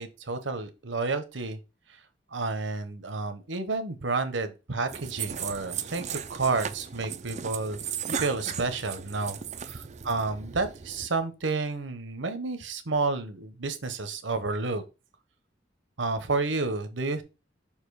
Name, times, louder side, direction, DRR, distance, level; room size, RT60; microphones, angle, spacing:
voice 1, 0.0-1.6 2.3-7.8 8.2-9.4 10.0-14.8 16.0-17.2, right 3 dB, 75° right, 9 dB, 1.0 m, -30 dB
sound 1, 4.9-11.1, right 7 dB, 40° right, 0.5 m, -36 dB
6.6 x 3.0 x 4.8 m, 0.28 s
head